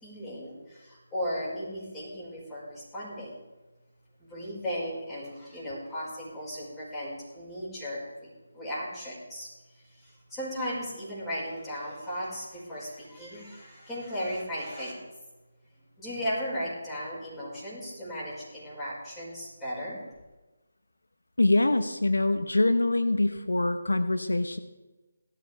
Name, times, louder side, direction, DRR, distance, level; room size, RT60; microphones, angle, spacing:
voice 1, 0.0-3.3 4.2-8.3 8.5-9.5 10.0-15.0 16.0-20.0, equal, 10° left, -8 dB, 5.4 m, -36 dB
voice 2, 21.4-24.6, left 2 dB, 85° left, 10 dB, 0.9 m, -24 dB
17.5 x 13.0 x 3.5 m, 1.2 s
figure-of-eight pair, 155°, 0 cm